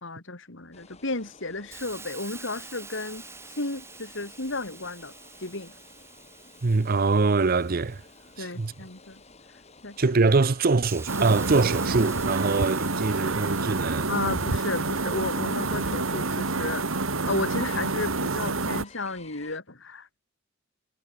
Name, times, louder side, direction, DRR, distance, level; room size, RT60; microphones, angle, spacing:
voice 1, 0.0-3.2 3.5-5.1 5.4-5.7 8.4-9.2 9.8-10.0 14.1-20.2, left 2 dB, 60° left, 3.1 m, -33 dB
sound 1, 0.7-19.6, left 3 dB, 30° left, 4.3 m, -53 dB
Hiss, 1.7-9.3 9.8-17.5, right 4 dB, 10° right, 2.5 m, -48 dB
voice 2, 6.6-8.0 8.4-8.7 10.0-14.1, right 3 dB, 45° right, 0.6 m, -23 dB
sound 2, 11.1-18.8, right 3 dB, 70° right, 1.8 m, -28 dB
head